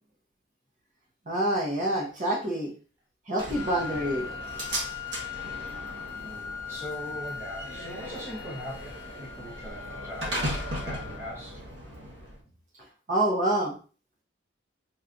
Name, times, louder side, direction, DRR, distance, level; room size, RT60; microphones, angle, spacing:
voice 1, 1.3-2.7 3.3-4.3 13.1-13.7, right 1 dB, 40° right, -2 dB, 1.0 m, -27 dB
Slam, 3.4-12.4, equal, 65° right, 1.5 m, -37 dB
Wind instrument woodwind instrument, 3.5-11.5, left 7 dB, 15° left, 0.5 m, -40 dB
voice 2, 6.0-11.6, equal, 10° right, -5 dB, 1.0 m, -41 dB
4.4 x 3.1 x 2.6 m, 0.37 s
head